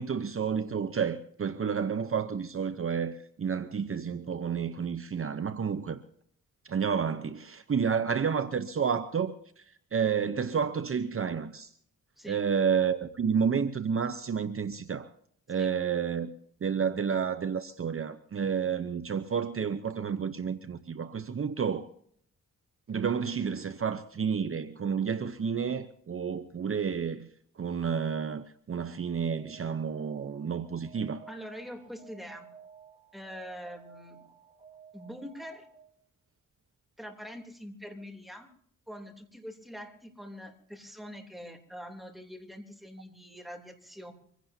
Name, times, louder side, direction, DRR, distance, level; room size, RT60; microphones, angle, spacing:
voice 1, 0.0-6.0 6.7-11.7 12.3-15.1 15.5-16.3 16.6-21.9 22.9-27.3 27.6-31.2, right 6 dB, 45° right, 0.8 m, -30 dB
Alarm, 28.9-36.0, right 7 dB, 25° right, 3.8 m, -54 dB
voice 2, 31.3-32.5 33.1-34.2 34.9-35.7 37.0-38.5 38.9-44.1, equal, ahead, 3.1 m, -44 dB
25.0 x 16.5 x 2.8 m
cardioid pair, 80°, 31 cm